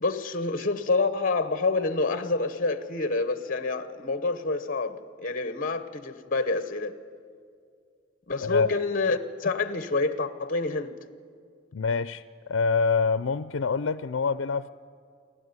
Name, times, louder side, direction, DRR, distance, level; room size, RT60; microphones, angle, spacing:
voice 1, 0.0-6.9 8.3-10.9, left 3 dB, 45° left, 1.0 m, -27 dB
voice 2, 8.4-8.8 11.7-14.7, left 5 dB, 75° left, 0.5 m, -26 dB
29.5 x 12.5 x 9.6 m
head